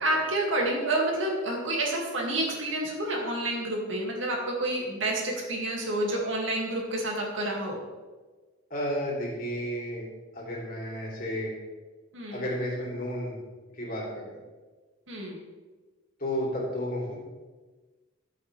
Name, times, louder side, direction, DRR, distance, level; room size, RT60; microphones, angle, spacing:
voice 1, 0.0-7.8 12.1-12.4 15.1-15.4, right 1 dB, 70° right, -1 dB, 2.4 m, -29 dB
voice 2, 8.7-10.1 10.3-11.5 12.3-13.4 13.7-14.4 16.2-17.2, equal, 45° left, -4 dB, 3.3 m, -32 dB
13.5 x 7.7 x 3.4 m, 1.3 s
head